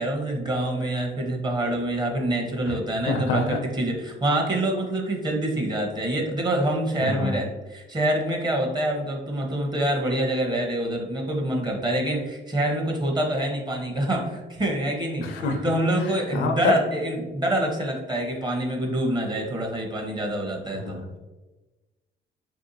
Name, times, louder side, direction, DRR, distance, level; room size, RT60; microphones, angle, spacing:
voice 1, 0.0-21.0, right 1 dB, 20° right, 1 dB, 0.8 m, -26 dB
voice 2, 3.0-3.6 7.0-7.4 15.2-15.6 16.0-16.1 16.3-16.7 20.8-21.2, left 3 dB, 75° left, 4 dB, 0.6 m, -26 dB
3.3 x 2.7 x 2.6 m, 1.1 s
cardioid pair, 90°, 20 cm